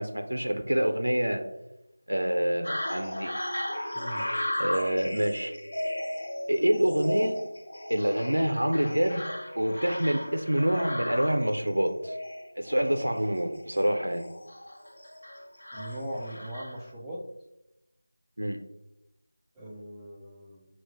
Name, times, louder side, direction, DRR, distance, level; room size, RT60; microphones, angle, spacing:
voice 1, 0.0-1.4 2.1-3.3 4.6-5.5 6.5-7.3 7.9-9.2 9.6-12.2 12.6-14.3 18.4-18.6, equal, 80° right, 6 dB, 0.5 m, -26 dB
sound 1, 2.6-16.9, left 1 dB, 60° left, 0.9 m, -36 dB
voice 2, 3.9-4.3 15.7-17.2 19.6-20.7, equal, 5° right, -6 dB, 0.4 m, -39 dB
4.4 x 2.3 x 3.5 m, 0.91 s
figure-of-eight pair, 165°, 0 cm